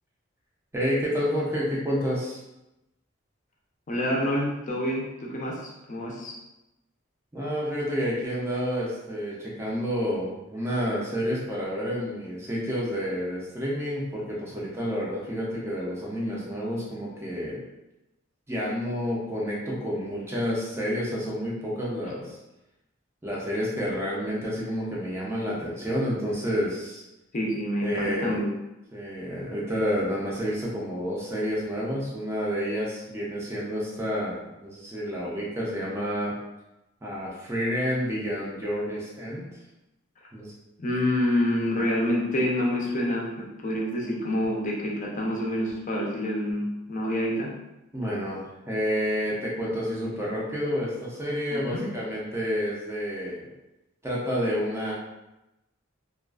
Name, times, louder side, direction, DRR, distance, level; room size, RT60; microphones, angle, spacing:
voice 1, 0.7-2.4 7.3-17.6 18.5-22.4 23.2-27.0 27.8-28.4 28.9-36.3 37.0-39.4 40.3-40.5 47.9-53.4 54.0-54.9, equal, 15° right, -5 dB, 0.5 m, -29 dB
voice 2, 3.9-6.3 27.3-28.5 40.8-47.5 51.5-51.8, left 1 dB, 40° left, -2 dB, 0.5 m, -27 dB
2.4 x 2.3 x 2.3 m, 0.94 s
head